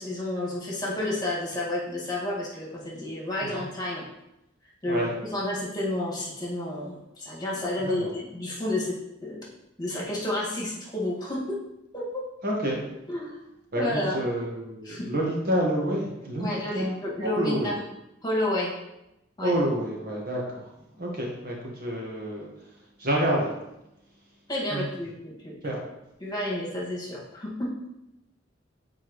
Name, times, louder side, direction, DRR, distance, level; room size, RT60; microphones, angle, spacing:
voice 1, 0.0-4.0 4.8-9.0 9.2-9.4 9.8-11.6 11.9-12.2 13.1-13.4 13.7-14.2 14.8-15.1 16.4-17.8 18.2-18.7 19.4-19.5 24.5-25.5 26.2-27.9, left 1 dB, 20° left, -5 dB, 1.9 m, -30 dB
voice 2, 12.4-12.8 13.7-17.7 19.4-23.5 24.7-24.9 25.6-25.8, right 1 dB, 50° right, -2 dB, 1.5 m, -29 dB
8.2 x 4.5 x 3.1 m, 0.88 s
head